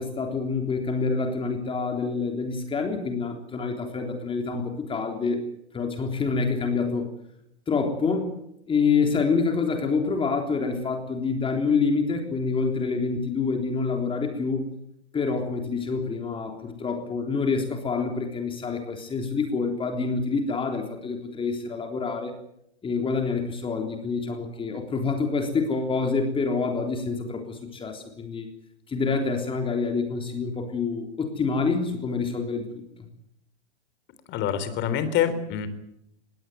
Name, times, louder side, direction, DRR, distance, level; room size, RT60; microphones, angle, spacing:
voice 1, 0.0-5.5 5.7-7.1 7.7-8.3 8.7-14.6 15.1-22.3 22.8-28.5 28.9-32.8, left 4 dB, 15° left, 4 dB, 3.6 m, -27 dB
voice 2, 34.3-35.7, left 9 dB, 30° left, 12 dB, 3.7 m, -26 dB
21.5 x 17.5 x 9.4 m, 0.78 s
hypercardioid pair, 115°, 34 cm